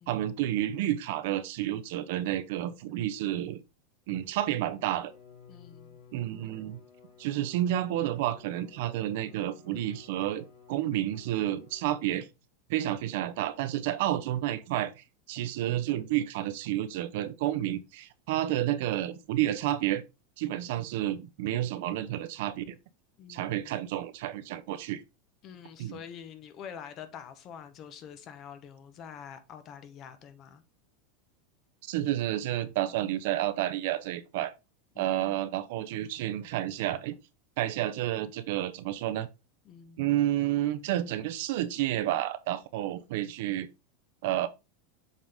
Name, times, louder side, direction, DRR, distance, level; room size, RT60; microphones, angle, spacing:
voice 1, 0.1-3.6 4.1-5.1 6.1-6.8 7.2-12.3 12.7-20.0 20.4-22.8 23.3-25.0 25.8-26.0 31.8-34.5 35.0-37.1 37.6-39.3 40.0-43.7 44.2-44.5, right 13 dB, 65° right, 0.8 m, -30 dB
Bowed string instrument, 4.1-12.4, left 7 dB, 65° left, 3.7 m, -56 dB
voice 2, 5.5-6.0 23.2-23.8 25.4-30.6 32.9-33.1 34.9-35.5 39.6-40.0, left 8 dB, 40° left, 1.2 m, -46 dB
7.3 x 4.0 x 3.5 m
supercardioid pair, 140°, 0 cm